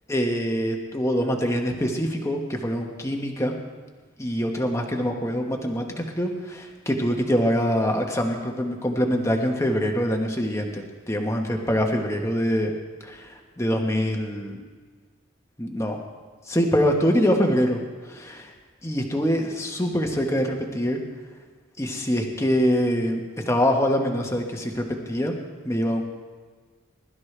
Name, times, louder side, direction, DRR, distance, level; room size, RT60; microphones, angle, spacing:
voice 1, 0.1-3.5 4.2-12.7 13.0-14.6 15.6-16.0 16.5-17.8 18.0-18.5 18.8-21.0 21.8-25.3 25.6-26.0, equal, 15° left, 2 dB, 1.3 m, -24 dB
21.0 x 12.5 x 3.4 m, 1.5 s
head